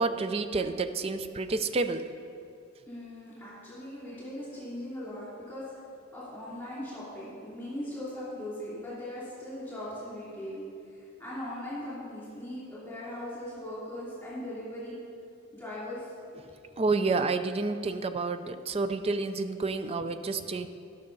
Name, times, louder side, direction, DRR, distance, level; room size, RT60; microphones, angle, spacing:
voice 1, 0.0-2.1 16.4-16.5 16.8-20.7, right 3 dB, 30° right, 10 dB, 0.4 m, -29 dB
voice 2, 2.9-5.6 6.1-10.6 10.9-14.9 15.5-16.1, left 1 dB, 10° left, -9 dB, 2.9 m, -39 dB
12.0 x 6.4 x 5.4 m, 2.5 s
head